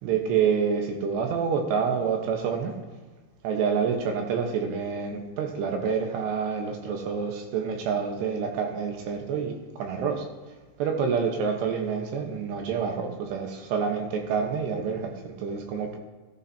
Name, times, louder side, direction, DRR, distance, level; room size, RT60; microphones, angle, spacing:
voice 1, 0.0-2.7 3.4-10.3 10.8-16.0, right 6 dB, 80° right, 3 dB, 3.4 m, -27 dB
17.5 x 11.5 x 2.8 m, 1.3 s
omnidirectional pair, 4.8 m